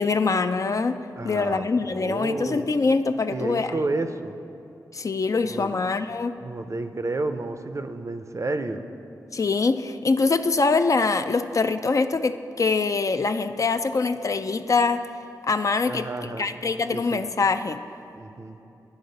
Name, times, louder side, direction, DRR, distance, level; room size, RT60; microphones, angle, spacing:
voice 1, 0.0-1.0 1.2-3.7 4.9-6.3 9.3-15.0 15.5-16.1 16.4-17.8, left 4 dB, 50° left, 9 dB, 0.3 m, -24 dB
voice 2, 1.2-2.7 3.2-4.4 5.5-5.9 6.4-8.9 15.9-16.5 16.9-17.2 18.1-18.6, right 2 dB, 45° right, 8 dB, 0.5 m, -31 dB
10.5 x 3.8 x 5.3 m, 2.8 s
cardioid pair, 45°, 7 cm